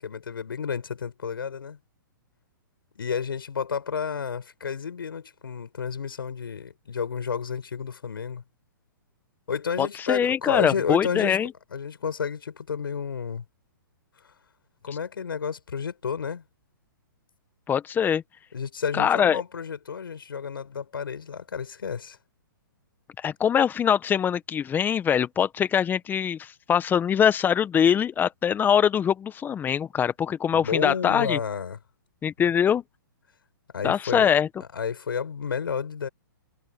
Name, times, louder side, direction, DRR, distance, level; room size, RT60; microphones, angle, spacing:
voice 1, 0.0-1.8 2.9-8.4 9.5-11.4 11.7-13.4 14.2-14.3 14.8-16.4 18.5-22.2 30.5-31.8 33.7-34.3 34.7-36.1, left 6 dB, 75° left, 8.0 m, -31 dB
voice 2, 9.8-11.5 17.7-18.2 18.9-19.4 23.2-31.4 32.2-32.8 33.8-34.5, left 8 dB, 15° left, 1.3 m, -23 dB
hypercardioid pair, 130°, 12 cm